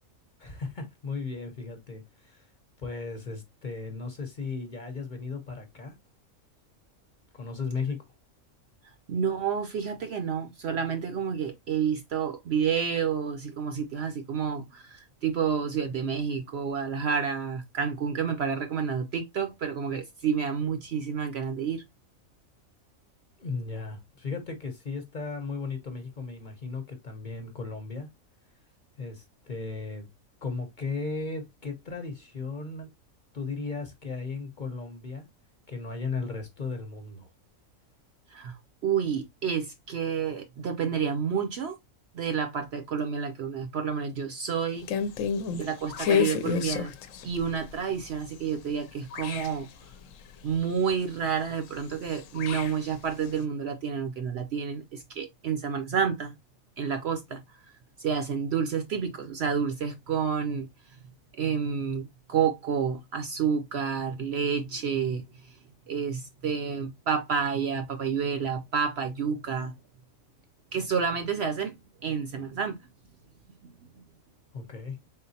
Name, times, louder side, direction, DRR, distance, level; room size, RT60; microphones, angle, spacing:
voice 1, 0.4-2.5 2.8-5.9 7.3-8.1 23.4-28.1 29.0-30.1 30.4-32.9 33.3-35.3 35.7-37.3 74.5-75.0, left 4 dB, 40° left, 0.9 m, -36 dB
voice 2, 9.1-21.8 38.3-38.6 38.8-41.8 42.1-44.9 45.5-46.9 47.2-49.7 50.4-56.3 56.8-57.6 58.0-61.0 61.3-65.6 65.9-69.7 70.7-71.7 72.0-72.8 73.6-74.0, right 7 dB, 60° right, 0.8 m, -29 dB
sound 1, 44.8-48.8 49.1-50.7 51.5-53.3, left 7 dB, 70° left, 1.0 m, -30 dB
3.9 x 3.8 x 2.7 m
omnidirectional pair, 1.4 m